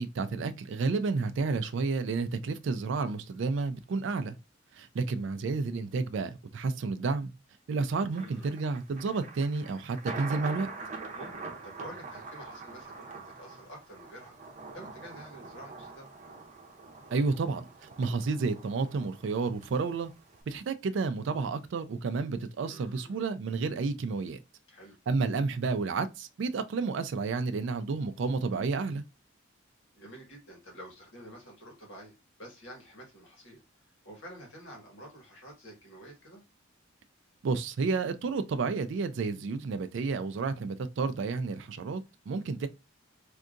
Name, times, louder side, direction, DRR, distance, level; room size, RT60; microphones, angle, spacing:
voice 1, 0.0-4.4 4.7-7.3 7.7-10.7 17.1-17.6 18.0-20.1 20.5-24.4 25.1-29.0 37.4-42.0 42.3-42.7, right 4 dB, 60° right, 0.3 m, -31 dB
voice 2, 8.1-8.5 11.1-11.3 11.6-14.4 14.7-16.1 22.7-23.2 24.7-25.0 29.9-36.4, equal, 70° left, 1.6 m, -49 dB
Thunder, 8.1-20.4, right 4 dB, 35° right, 0.7 m, -44 dB
3.5 x 2.7 x 2.5 m
head